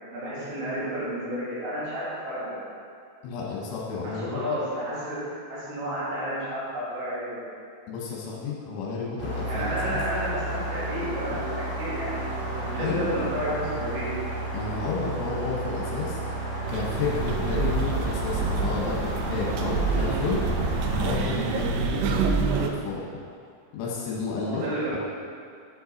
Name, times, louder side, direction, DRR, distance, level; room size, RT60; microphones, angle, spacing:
voice 1, 0.1-2.6 4.0-7.4 9.5-12.2 12.5-14.1 24.4-25.0, equal, 65° right, -10 dB, 4.4 m, -31 dB
voice 2, 3.2-4.4 7.9-10.0 12.8-13.1 14.5-16.2 16.7-20.4 21.0-23.0 23.7-24.6 24.9-25.0, left 5 dB, 75° left, -4 dB, 3.4 m, -31 dB
sound 1, 9.2-21.1, right 2 dB, 50° right, 1.8 m, -32 dB
sound 2, 16.7-22.7, right 4 dB, 85° right, 2.6 m, -27 dB
8.8 x 5.5 x 3.9 m, 2.4 s
omnidirectional pair, 5.9 m